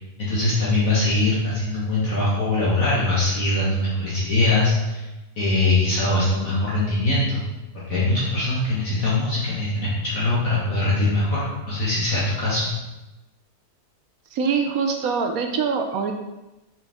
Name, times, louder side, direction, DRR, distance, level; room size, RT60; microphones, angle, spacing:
voice 1, 0.2-5.1 5.4-7.5 7.7-12.7, left 2 dB, 55° left, -8 dB, 1.9 m, -22 dB
voice 2, 14.3-16.1, right 5 dB, 70° right, 4 dB, 1.0 m, -24 dB
6.8 x 4.5 x 3.5 m, 1.0 s
omnidirectional pair, 1.7 m